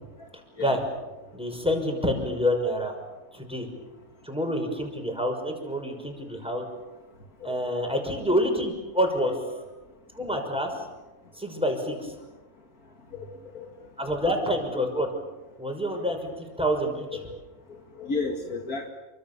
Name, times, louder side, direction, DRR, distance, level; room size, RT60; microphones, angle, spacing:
voice 1, 1.3-2.9 3.3-3.7 4.2-6.6 7.4-9.3 10.1-10.7 11.4-12.1 14.0-15.1 15.6-17.0, equal, 5° right, 3 dB, 6.0 m, -27 dB
voice 2, 7.4-8.1 9.5-9.6 13.1-13.7 17.1-17.3 17.7-18.9, left 4 dB, 70° left, 2 dB, 2.7 m, -34 dB
29.0 x 25.5 x 7.1 m, 1.1 s
omnidirectional pair, 1.6 m